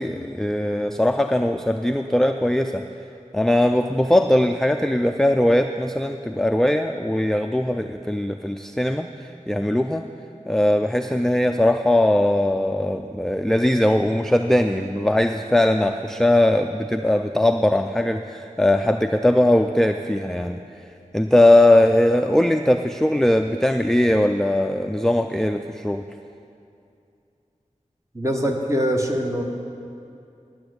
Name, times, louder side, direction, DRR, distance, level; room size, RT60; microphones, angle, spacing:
voice 1, 0.0-2.8 3.3-10.0 10.5-20.6 21.1-26.0, left 1 dB, 5° left, 6 dB, 0.4 m, -20 dB
voice 2, 28.1-29.4, equal, 20° right, 1 dB, 1.3 m, -23 dB
10.0 x 8.9 x 7.9 m, 2.6 s
wide cardioid pair, 60°, 13 cm